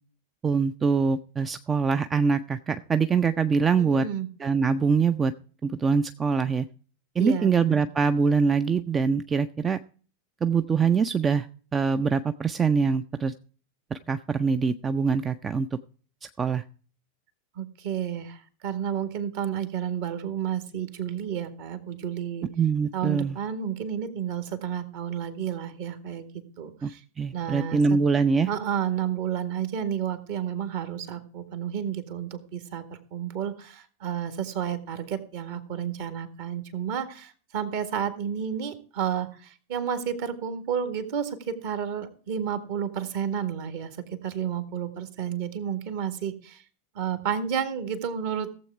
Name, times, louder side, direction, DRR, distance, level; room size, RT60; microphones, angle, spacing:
voice 1, 0.4-4.1 4.4-5.3 5.6-6.7 7.2-9.8 10.4-11.5 11.7-13.3 13.9-15.8 16.4-16.6 22.6-23.4 26.8-26.9 27.2-28.5, right 5 dB, 20° right, 12 dB, 0.5 m, -24 dB
voice 2, 3.8-4.3 7.2-7.8 17.6-22.5 22.9-26.3 26.6-27.0 27.3-28.0 28.5-32.8 33.1-46.6 47.0-48.5, right 8 dB, 50° right, 11 dB, 1.7 m, -31 dB
15.5 x 7.7 x 4.7 m, 0.42 s
figure-of-eight pair, 90°, 0 cm